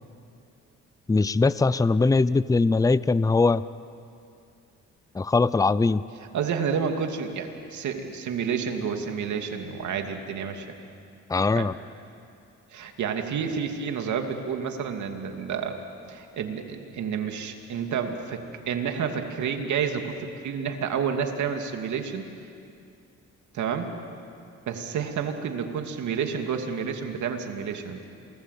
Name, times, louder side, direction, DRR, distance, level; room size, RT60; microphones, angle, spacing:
voice 1, 1.1-3.6 5.1-6.0 11.3-11.7, left 3 dB, 10° left, 17 dB, 0.5 m, -21 dB
voice 2, 6.3-10.8 11.5-11.7 12.7-15.8 16.1-22.3 23.5-23.9 24.7-28.0, right 7 dB, 70° right, 5 dB, 2.7 m, -30 dB
28.0 x 20.5 x 8.4 m, 2.5 s
cardioid pair, 90°, 30 cm